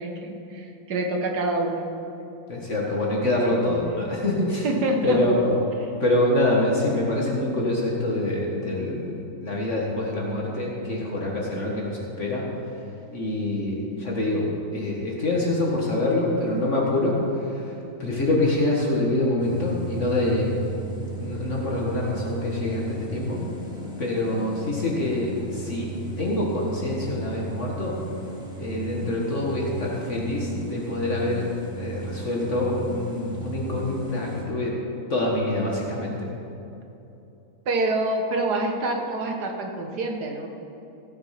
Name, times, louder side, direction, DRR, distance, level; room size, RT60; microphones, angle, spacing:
voice 1, 0.0-1.9 4.6-5.2 37.6-40.5, right 2 dB, 60° right, 3 dB, 1.6 m, -26 dB
voice 2, 2.5-4.7 5.0-5.6 6.0-12.8 13.1-20.6 21.0-23.4 24.0-25.9 26.2-28.0 28.6-34.8 35.1-36.3, left 1 dB, 40° left, -3 dB, 1.7 m, -25 dB
sound 1, 19.4-34.5, right 3 dB, ahead, 1.6 m, -36 dB
15.5 x 6.7 x 5.8 m, 2.9 s
omnidirectional pair, 2.1 m